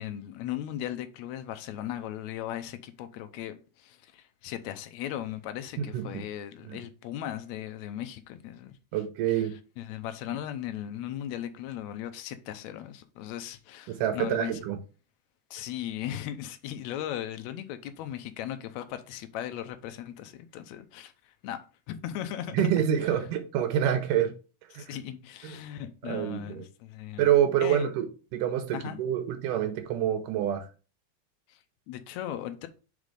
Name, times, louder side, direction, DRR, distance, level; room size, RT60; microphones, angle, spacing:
voice 1, 0.0-8.8 9.3-9.5 9.8-14.6 15.5-21.6 21.9-22.6 24.7-27.3 27.6-27.9 28.7-29.0 31.5-31.6 31.9-32.7, left 11 dB, 85° left, 1.6 m, -37 dB
voice 2, 8.9-9.5 13.9-14.8 22.5-24.3 24.8-24.9 25.4-25.6 26.0-26.6 27.2-30.7, right 10 dB, 80° right, 2.3 m, -27 dB
5.2 x 4.1 x 4.8 m
omnidirectional pair, 3.8 m